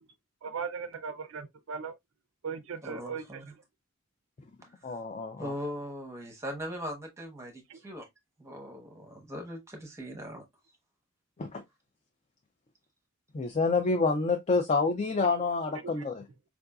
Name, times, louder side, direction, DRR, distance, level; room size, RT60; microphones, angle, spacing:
voice 1, 0.4-1.9 2.4-3.4 7.7-7.8 15.8-15.9, right 5 dB, 70° right, 0.4 m, -38 dB
voice 2, 2.8-3.5 4.8-5.0 5.4-8.1 8.4-10.4, equal, 15° right, 0.8 m, -40 dB
voice 3, 4.8-5.5 11.4-11.6 13.3-16.3, left 4 dB, 30° left, 0.4 m, -28 dB
4.6 x 2.5 x 2.2 m
head